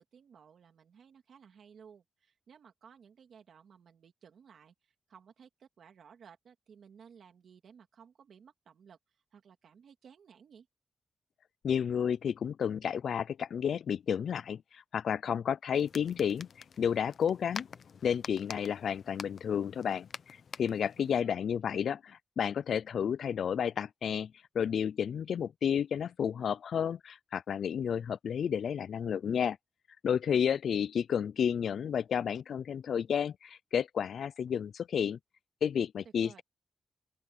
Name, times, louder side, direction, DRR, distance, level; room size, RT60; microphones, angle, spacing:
voice 1, 0.0-10.7 20.9-21.3 36.0-36.4, right 7 dB, 85° right, 2.6 m, -57 dB
voice 2, 11.6-16.5 16.8-17.7 18.0-29.6 30.0-35.2 35.6-36.3, left 8 dB, 85° left, 0.3 m, -31 dB
sound 1, 15.7-21.2, left 6 dB, 65° left, 0.8 m, -48 dB
open air
wide cardioid pair, 135°, 0 cm